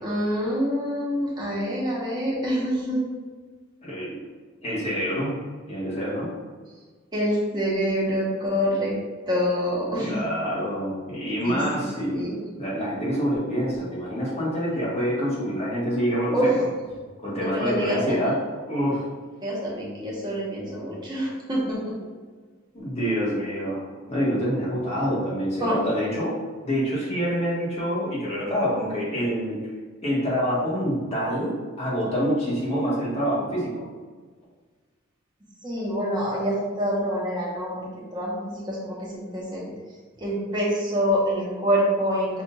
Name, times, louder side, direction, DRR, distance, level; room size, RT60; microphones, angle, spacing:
voice 1, 0.0-3.1 7.1-8.9 9.3-10.2 11.4-12.4 16.3-16.5 17.4-18.2 19.4-22.0 25.6-25.8 35.6-39.7 40.2-42.4, equal, 20° right, -5 dB, 1.1 m, -26 dB
voice 2, 3.8-4.3 4.6-5.4 5.7-6.3 10.0-12.3 12.6-16.5 17.2-18.4 18.7-19.0 22.7-26.3 26.6-29.6 30.0-33.9, equal, 35° left, -7 dB, 1.4 m, -26 dB
6.0 x 2.6 x 2.6 m, 1.4 s
head